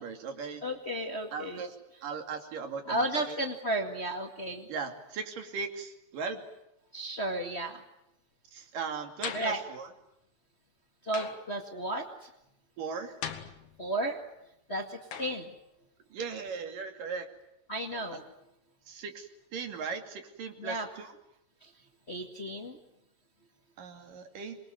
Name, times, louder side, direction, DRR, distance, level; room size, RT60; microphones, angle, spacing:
voice 1, 0.0-0.7 1.3-1.8 2.0-3.4 4.7-6.4 8.5-9.9 12.8-13.2 16.1-17.3 18.1-18.2 18.9-21.1 23.8-24.6, right 5 dB, 70° right, 5 dB, 4.3 m, -38 dB
voice 2, 0.6-1.6 2.9-4.7 6.9-7.8 9.3-9.6 11.0-12.3 13.8-14.2 14.7-15.5 17.7-18.2 20.6-20.9 22.1-22.8, right 1 dB, 25° left, 4 dB, 1.7 m, -33 dB
sound 1, 9.2-9.7 11.1-11.6 13.2-14.0 15.1-15.5, left 7 dB, 65° left, 3.2 m, -40 dB
26.5 x 23.0 x 9.4 m, 0.85 s
omnidirectional pair, 4.0 m